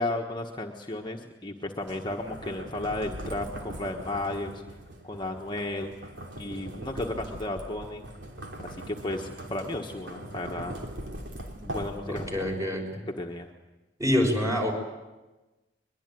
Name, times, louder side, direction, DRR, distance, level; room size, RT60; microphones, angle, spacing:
voice 1, 0.0-4.6 5.0-5.9 6.4-8.1 8.6-10.8 11.6-12.3 13.2-13.5, left 2 dB, 25° left, 1 dB, 1.4 m, -33 dB
sound 1, 1.8-12.8, right 1 dB, 80° right, 3.4 m, -41 dB
voice 2, 12.1-12.8 14.0-14.7, left 1 dB, 20° right, 2 dB, 5.6 m, -26 dB
22.0 x 22.0 x 9.3 m, 1.1 s
head